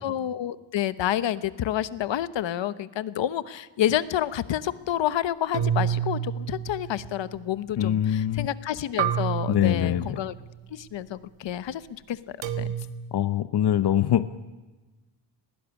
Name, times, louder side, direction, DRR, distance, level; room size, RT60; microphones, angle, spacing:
voice 1, 0.0-10.3 10.7-12.7, left 11 dB, 85° left, 15 dB, 1.0 m, -29 dB
sound 1, 5.5-7.3 9.0-10.4 12.4-12.9, right 9 dB, 85° right, 1.6 m, -29 dB
voice 2, 7.8-8.5 9.5-10.1 13.1-14.5, left 11 dB, 60° left, 13 dB, 0.8 m, -23 dB
19.5 x 17.0 x 9.9 m, 1.2 s
wide cardioid pair, 135°, 43 cm